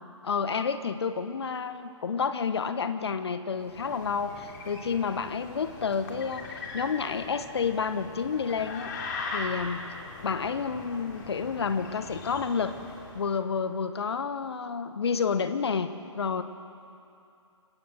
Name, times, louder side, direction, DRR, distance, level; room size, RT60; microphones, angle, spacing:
voice 1, 0.2-8.9 9.3-9.8 10.2-12.7 13.1-15.9 16.2-16.4, left 6 dB, 55° left, 11 dB, 1.3 m, -30 dB
sound 1, 3.6-13.3, left 3 dB, 40° left, 3.0 m, -40 dB
28.5 x 17.0 x 6.6 m, 2.6 s
figure-of-eight pair, 130°, 16 cm